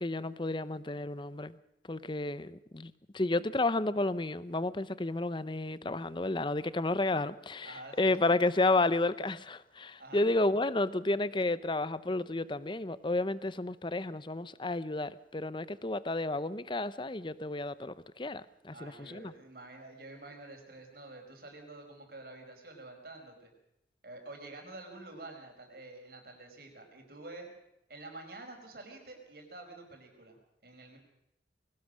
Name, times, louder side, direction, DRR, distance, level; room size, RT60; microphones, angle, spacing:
voice 1, 0.0-1.5 1.9-19.3, left 2 dB, 30° left, 16 dB, 0.7 m, -31 dB
voice 2, 7.6-8.3 10.0-10.4 18.7-23.5 24.0-27.5 27.9-30.4 30.6-31.0, right 2 dB, 60° right, 3 dB, 4.9 m, -48 dB
22.0 x 18.5 x 6.4 m, 0.82 s
head